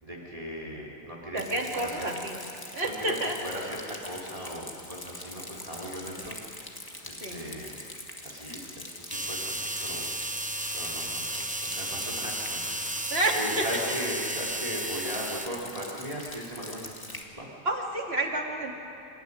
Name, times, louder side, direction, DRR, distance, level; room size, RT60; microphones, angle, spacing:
voice 1, 0.0-2.1 2.8-6.7 7.0-7.8 8.2-10.1 10.7-17.5, equal, 35° right, -3 dB, 3.9 m, -38 dB
voice 2, 1.3-2.4 2.7-3.3 7.2-7.4 13.1-13.6 17.7-18.7, right 2 dB, 70° right, 0 dB, 2.7 m, -29 dB
Rain, 1.4-17.2, left 1 dB, 20° left, 1.8 m, -43 dB
sound 1, 9.1-15.5, right 1 dB, 10° right, 0.8 m, -33 dB
26.5 x 14.0 x 9.9 m, 2.8 s
omnidirectional pair, 1.1 m